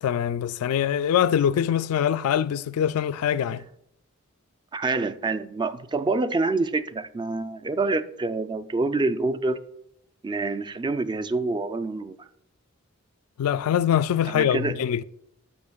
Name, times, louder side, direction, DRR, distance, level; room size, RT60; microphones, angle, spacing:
voice 1, 0.0-3.6 13.4-15.0, left 9 dB, 80° left, 0.3 m, -23 dB
voice 2, 4.7-9.6 10.2-12.3 14.2-14.8, right 3 dB, 20° right, 0.3 m, -27 dB
13.0 x 8.1 x 2.3 m
head